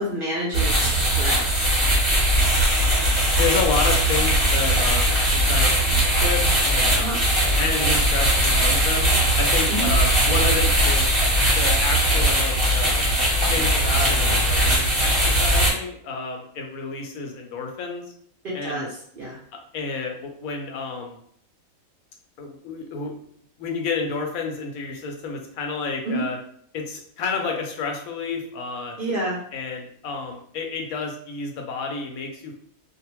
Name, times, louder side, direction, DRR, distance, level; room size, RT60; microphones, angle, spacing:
voice 1, 0.0-1.8 7.0-7.2 9.7-9.9 18.6-18.9 19.1-19.4 26.0-26.2 29.0-29.4, right 1 dB, 55° right, -5 dB, 0.6 m, -28 dB
sound 1, 0.5-15.7, right 1 dB, 25° right, 0.9 m, -20 dB
voice 2, 3.3-7.3 7.5-9.1 9.4-11.1 11.5-13.0 13.5-18.0 18.5-18.8 19.7-21.2 22.4-23.2 23.6-26.4 26.7-29.0 29.5-32.5, left 5 dB, 80° left, 2 dB, 1.0 m, -30 dB
2.7 x 2.0 x 3.0 m, 0.64 s
omnidirectional pair, 1.5 m